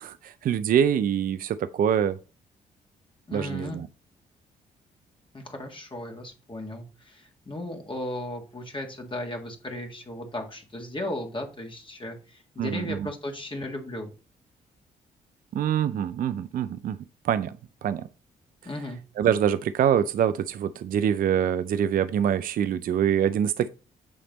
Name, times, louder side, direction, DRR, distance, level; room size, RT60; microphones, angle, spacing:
voice 1, 0.0-2.2 3.3-3.9 12.6-13.1 15.5-17.0 17.2-17.5 17.8-18.0 19.2-23.7, right 9 dB, 50° right, 0.4 m, -25 dB
voice 2, 3.3-3.8 5.3-14.1 18.6-19.0, left 1 dB, 25° left, 1.7 m, -36 dB
8.7 x 3.3 x 3.9 m
hypercardioid pair, 45°, 18 cm